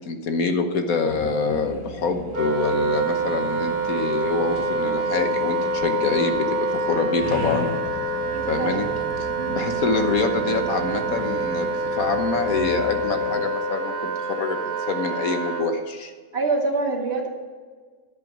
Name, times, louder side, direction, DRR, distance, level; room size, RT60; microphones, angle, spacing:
voice 1, 0.1-6.3 6.7-7.7 8.5-8.9 9.5-16.1, left 4 dB, 60° left, 6 dB, 1.4 m, -25 dB
sound 1, 1.1-13.5, left 1 dB, 85° left, 3.5 m, -37 dB
Wind instrument woodwind instrument, 2.3-15.7, right 2 dB, 65° right, 1.8 m, -26 dB
voice 2, 8.1-8.8 9.4-9.6 16.3-17.3, right 3 dB, 40° right, 1 dB, 1.9 m, -26 dB
10.5 x 8.3 x 6.1 m, 1.5 s
omnidirectional pair, 1.9 m